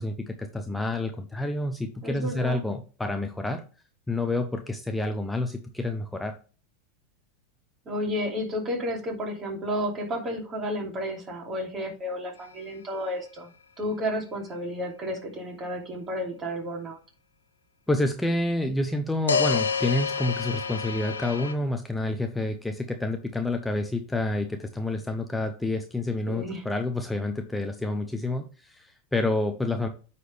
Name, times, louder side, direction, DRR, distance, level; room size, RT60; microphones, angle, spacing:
voice 1, 0.0-3.6 4.1-6.3 17.9-29.9, left 2 dB, 5° left, 6 dB, 0.8 m, -28 dB
voice 2, 2.0-2.6 7.8-13.5 13.8-17.0 26.3-26.6, equal, 30° right, 0 dB, 2.9 m, -32 dB
sound 1, 12.4-12.5 19.3-21.5, left 5 dB, 90° left, 0.9 m, -28 dB
9.3 x 4.2 x 3.4 m, 0.36 s
hypercardioid pair, 95°, 0 cm